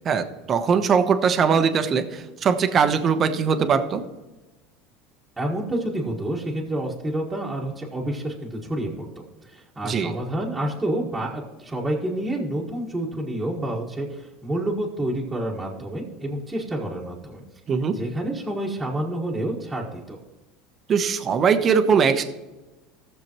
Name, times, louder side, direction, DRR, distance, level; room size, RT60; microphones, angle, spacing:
voice 1, 0.0-4.0 9.8-10.1 17.7-18.0 20.9-22.2, right 6 dB, 35° right, 8 dB, 1.0 m, -21 dB
voice 2, 5.4-9.1 9.4-17.4 17.9-20.2, right 1 dB, 10° right, -5 dB, 1.7 m, -28 dB
15.5 x 6.9 x 3.1 m, 1.1 s
supercardioid pair, 110°, 0 cm